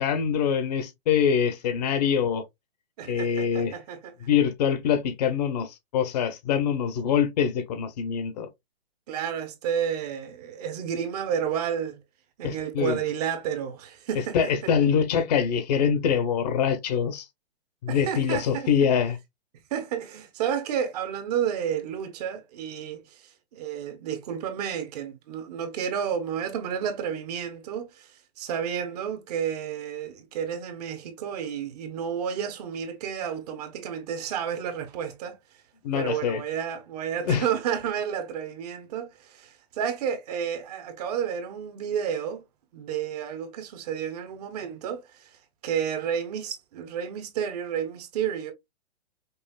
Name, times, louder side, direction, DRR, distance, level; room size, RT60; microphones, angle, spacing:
voice 1, 0.0-2.4 3.1-3.8 4.3-8.5 12.4-13.0 14.3-17.2 17.8-19.2 35.8-36.4 37.3-37.4, left 7 dB, 40° left, 0.7 m, -24 dB
voice 2, 3.0-4.1 9.1-12.0 12.4-14.7 17.9-18.7 19.7-28.1 28.4-35.4 35.9-42.4 42.7-48.5, right 8 dB, 40° right, 0.8 m, -31 dB
5.4 x 2.3 x 2.3 m
hypercardioid pair, 150°, 33 cm